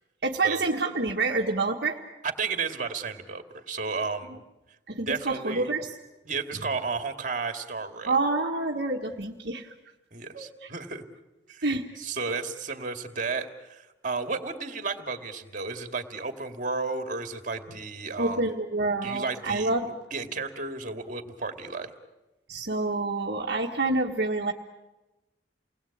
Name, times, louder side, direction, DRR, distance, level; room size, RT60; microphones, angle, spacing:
voice 1, 0.2-2.0 4.9-5.9 8.1-9.7 10.3-10.7 11.6-11.9 18.2-19.9 22.5-24.5, right 3 dB, 65° right, 0 dB, 1.5 m, -27 dB
voice 2, 2.2-4.4 5.1-5.7 6.3-8.2 10.1-11.0 11.5-11.7 12.0-18.4 19.0-19.7 20.1-21.9, right 4 dB, 45° right, 6 dB, 2.3 m, -33 dB
29.5 x 20.5 x 8.7 m, 1.0 s
head